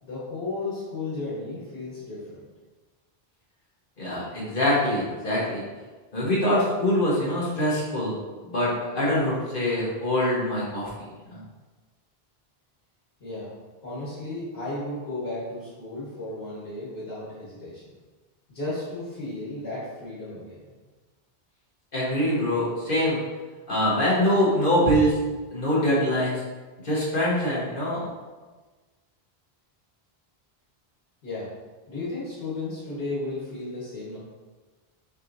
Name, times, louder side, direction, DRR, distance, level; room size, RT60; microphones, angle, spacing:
voice 1, 0.0-2.4 13.2-13.5 13.8-17.8 18.5-20.7 31.2-31.5 31.9-34.2, left 2 dB, 90° left, -9 dB, 1.6 m, -34 dB
voice 2, 4.0-5.6 6.1-8.2 8.4-11.4 21.9-23.2 23.7-25.2 25.5-26.4 26.8-28.0, equal, 60° left, -6 dB, 1.4 m, -24 dB
6.4 x 3.0 x 2.6 m, 1.3 s
omnidirectional pair, 1.0 m